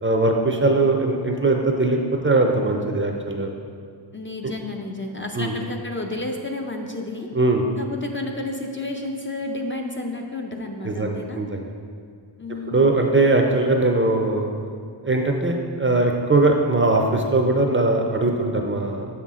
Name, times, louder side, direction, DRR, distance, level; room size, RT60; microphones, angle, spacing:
voice 1, 0.0-3.5 5.3-5.5 7.3-7.6 10.8-11.6 12.7-14.5 15.0-19.1, right 2 dB, 25° right, 2 dB, 0.5 m, -20 dB
voice 2, 4.1-7.3 7.8-11.4 12.4-13.0, left 2 dB, 25° left, 2 dB, 0.5 m, -31 dB
6.8 x 5.8 x 3.6 m, 2.2 s
wide cardioid pair, 100°, 48 cm